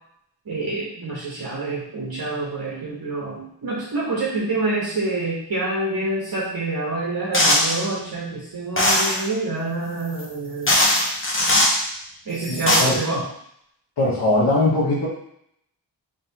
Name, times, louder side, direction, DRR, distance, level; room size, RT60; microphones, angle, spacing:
voice 1, 0.5-10.8 12.3-13.2, right 2 dB, 55° right, -6 dB, 1.3 m, -27 dB
sound 1, 7.3-7.8 8.8-9.2 10.2-10.3 10.7-11.8 12.4-12.8, left 1 dB, 30° left, 1.1 m, -19 dB
voice 2, 12.5-13.2 14.0-15.1, left 2 dB, 70° left, -5 dB, 1.3 m, -21 dB
3.7 x 3.6 x 2.9 m, 0.71 s
cardioid pair, 40°, 42 cm